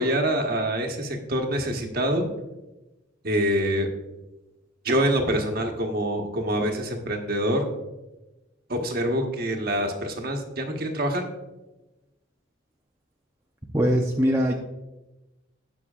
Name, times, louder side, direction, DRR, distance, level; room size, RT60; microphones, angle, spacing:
voice 1, 0.0-2.3 3.2-3.9 4.8-7.7 8.7-11.2, equal, 45° right, 3 dB, 1.3 m, -25 dB
voice 2, 13.7-14.5, equal, 15° right, -1 dB, 0.6 m, -21 dB
18.0 x 6.1 x 2.5 m, 1.0 s
head